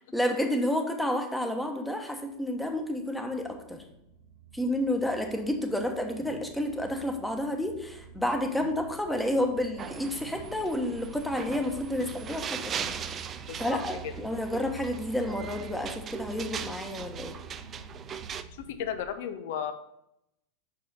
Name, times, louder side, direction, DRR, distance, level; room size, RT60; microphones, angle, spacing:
voice 1, 0.1-3.8 4.5-13.0 13.6-17.3, left 1 dB, 5° left, 3 dB, 1.1 m, -30 dB
sound 1, 1.6-19.1, right 5 dB, 75° right, 0.8 m, -48 dB
sound 2, 9.8-18.4, right 7 dB, 30° right, 0.4 m, -39 dB
voice 2, 13.5-14.1 18.5-19.7, left 9 dB, 60° left, 9 dB, 0.7 m, -35 dB
6.2 x 4.8 x 5.4 m, 0.81 s
figure-of-eight pair, 85°, 0 cm